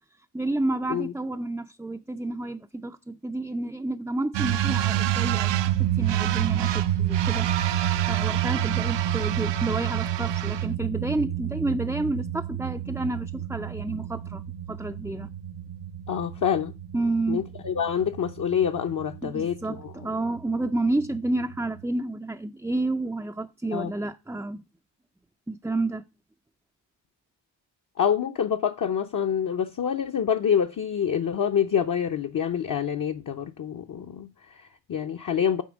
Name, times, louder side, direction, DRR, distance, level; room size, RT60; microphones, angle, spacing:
voice 1, 0.3-7.5 8.1-14.4 14.7-15.3 16.9-17.4 19.2-24.6 25.5-26.0, right 2 dB, 5° right, 0.4 m, -30 dB
sound 1, 4.3-21.8, right 11 dB, 65° right, 0.6 m, -28 dB
voice 2, 16.1-16.7 17.3-19.9 23.7-23.9 28.0-35.6, left 8 dB, 45° left, 0.7 m, -26 dB
9.2 x 3.5 x 6.2 m
cardioid pair, 75°, 46 cm